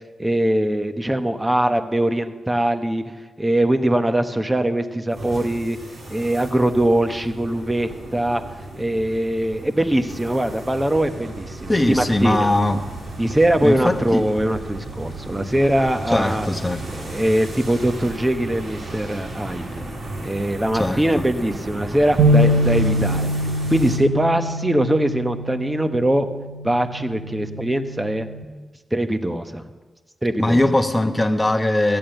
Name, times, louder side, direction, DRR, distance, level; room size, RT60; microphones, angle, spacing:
voice 1, 0.2-3.0 3.4-5.8 6.1-8.4 8.8-12.5 13.2-16.5 16.9-19.9 20.2-23.3 23.7-26.3 26.6-28.3 28.9-29.7 30.2-30.6, right 1 dB, 15° right, 8 dB, 1.1 m, -22 dB
sound 1, 5.1-24.0, right 2 dB, 65° right, 4.0 m, -34 dB
voice 2, 11.7-12.8 13.6-14.3 16.1-16.8 20.7-21.3 30.4-32.0, left 1 dB, 15° left, 3 dB, 1.2 m, -20 dB
sound 2, 22.2-28.4, equal, 85° right, 1.0 m, -23 dB
13.5 x 8.9 x 7.9 m, 1.3 s
cardioid pair, 70°, 0 cm